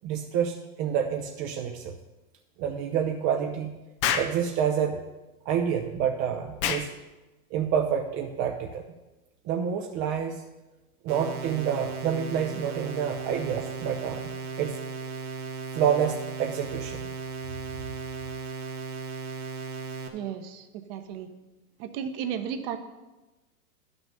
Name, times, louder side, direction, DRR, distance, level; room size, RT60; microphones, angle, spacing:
voice 1, 0.0-2.0 2.6-3.8 4.1-5.0 5.5-7.0 7.5-8.8 9.4-10.4 11.0-14.3 14.6-14.8 15.7-17.1, right 8 dB, 25° right, 3 dB, 0.5 m, -28 dB
Explosion, 4.0-4.4 6.6-6.9, left 8 dB, 25° left, 0.3 m, -26 dB
sound 1, 11.1-20.1, right 4 dB, 75° right, 1.5 m, -36 dB
voice 2, 20.1-21.3 21.8-22.8, right 8 dB, 40° right, 8 dB, 1.0 m, -34 dB
10.5 x 6.1 x 5.3 m, 1.1 s
hypercardioid pair, 125°, 43 cm